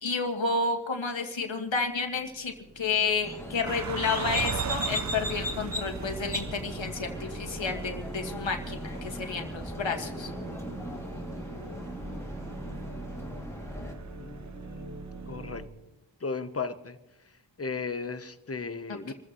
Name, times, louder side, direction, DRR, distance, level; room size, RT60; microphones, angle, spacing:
voice 1, 0.0-10.3 19.1-19.2, left 4 dB, 75° left, 4 dB, 2.0 m, -31 dB
sound 1, 1.8-15.7, right 2 dB, 60° right, 4.0 m, -43 dB
sound 2, 3.2-13.9, equal, 5° left, 2.5 m, -38 dB
sound 3, 3.7-15.3 15.6-15.7, right 7 dB, 40° right, 0.6 m, -40 dB
voice 2, 14.2-14.9 15.3-15.7 16.2-17.0 17.6-19.1, left 4 dB, 30° left, 10 dB, 1.0 m, -35 dB
27.5 x 14.5 x 3.1 m, 0.97 s
wide cardioid pair, 80°, 45 cm